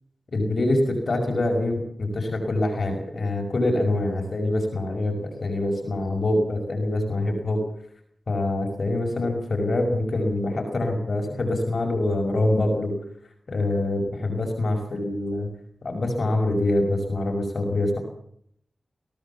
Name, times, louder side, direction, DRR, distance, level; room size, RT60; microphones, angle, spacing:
voice 1, 0.3-7.6 8.3-12.9 13.5-15.5 15.8-18.0, left 1 dB, 65° left, 2 dB, 5.6 m, -25 dB
22.5 x 17.0 x 7.2 m, 0.69 s
cardioid pair, 60°, 0 cm